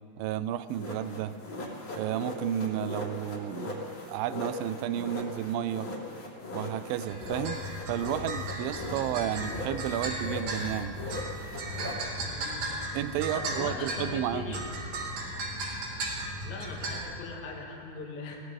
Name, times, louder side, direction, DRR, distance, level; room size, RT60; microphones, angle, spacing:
voice 1, 0.2-1.3 2.0-5.9 6.5-11.0 12.9-14.6, right 11 dB, 80° right, 14 dB, 2.2 m, -32 dB
sound 1, 0.7-9.1 9.4-12.0, left 2 dB, 35° left, 3.0 m, -39 dB
sound 2, 7.1-17.0, right 1 dB, 65° right, 3.8 m, -36 dB
voice 2, 9.1-9.6 12.3-12.7 13.3-15.0 16.4-18.4, left 3 dB, 55° left, -1 dB, 2.7 m, -40 dB
23.0 x 17.5 x 3.6 m, 2.6 s
omnidirectional pair, 4.3 m